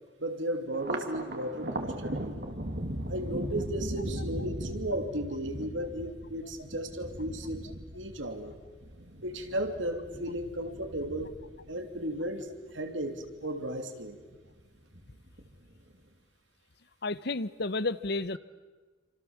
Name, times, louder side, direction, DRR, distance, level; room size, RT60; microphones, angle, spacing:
voice 1, 0.2-2.4 3.1-8.5 9.2-11.3 11.7-14.2, right 1 dB, 85° right, 6 dB, 3.0 m, -35 dB
Thunder, 0.7-13.4 13.8-14.6 14.9-15.8, right 1 dB, 55° right, 2.5 m, -39 dB
voice 2, 17.0-18.4, left 3 dB, 60° left, 16 dB, 0.9 m, -31 dB
29.5 x 26.0 x 7.3 m, 1.3 s
head